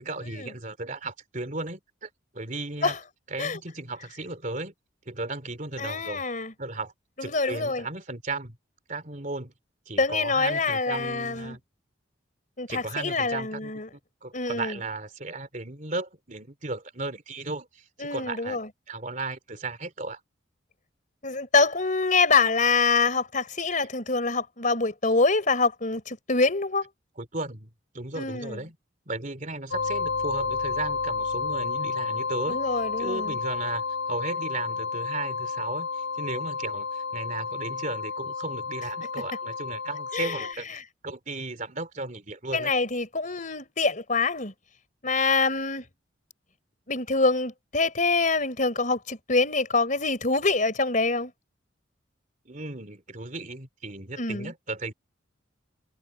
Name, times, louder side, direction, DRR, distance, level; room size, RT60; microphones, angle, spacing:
voice 1, 0.0-3.0 3.3-4.7 5.0-6.2 6.6-6.9 7.2-8.6 8.9-9.5 9.9-11.6 12.7-13.7 14.2-18.6 18.9-20.2 27.2-28.8 29.1-40.7 41.0-42.7 52.4-54.9, right 2 dB, 40° right, 3.1 m, -35 dB
voice 2, 5.8-6.5 7.2-7.8 10.0-11.6 12.6-13.9 14.3-14.8 18.0-18.7 21.2-26.9 28.1-28.6 32.5-33.4 40.1-40.4 42.5-44.5 45.0-45.8 46.9-51.3 54.2-54.5, left 3 dB, 45° left, 4.3 m, -25 dB
sound 1, 29.7-40.5, left 4 dB, 75° left, 6.0 m, -31 dB
head